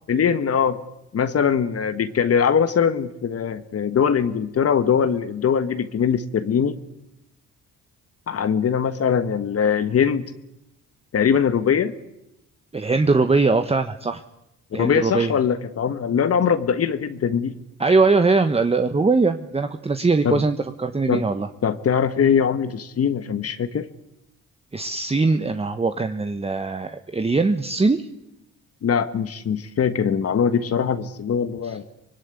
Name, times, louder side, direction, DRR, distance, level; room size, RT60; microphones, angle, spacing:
voice 1, 0.1-0.8 1.1-6.8 8.3-10.3 11.1-11.9 14.7-17.6 20.2-20.4 21.1-21.2 21.6-23.9 28.8-31.8, left 7 dB, 50° left, 11 dB, 1.5 m, -21 dB
voice 2, 12.7-14.2 14.7-15.3 17.8-21.5 24.7-28.1, right 3 dB, 20° right, 8 dB, 1.3 m, -21 dB
24.5 x 20.5 x 9.8 m, 0.87 s
cardioid pair, 90°, 30 cm